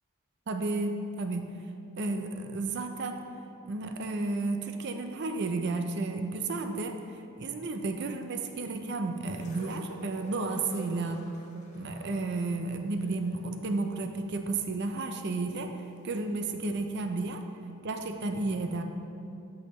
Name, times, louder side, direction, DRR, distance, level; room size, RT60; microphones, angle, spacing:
voice 1, 0.5-1.5 2.0-3.2 3.7-11.2 11.7-15.7 16.0-17.4 17.8-18.8, right 3 dB, 50° right, 6 dB, 0.5 m, -32 dB
sound 1, 9.3-15.3 16.2-16.3, left 1 dB, 35° left, 0.9 m, -50 dB
8.5 x 6.3 x 3.1 m, 2.6 s
head